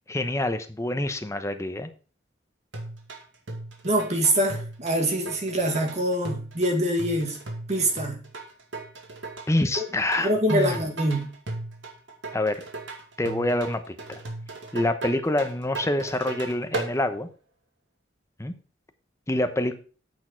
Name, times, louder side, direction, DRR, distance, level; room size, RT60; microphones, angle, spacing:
voice 1, 0.1-1.9 9.5-10.8 12.3-12.6 13.2-14.2 14.7-17.3 18.4-18.5 19.3-19.8, left 1 dB, 15° left, 0.9 m, -26 dB
sound 1, 2.7-16.9, right 2 dB, 80° right, 2.2 m, -37 dB
voice 2, 3.8-7.4 7.7-8.2 9.8-9.9 10.2-11.3, right 1 dB, 40° right, 1.9 m, -24 dB
8.7 x 6.4 x 4.6 m
head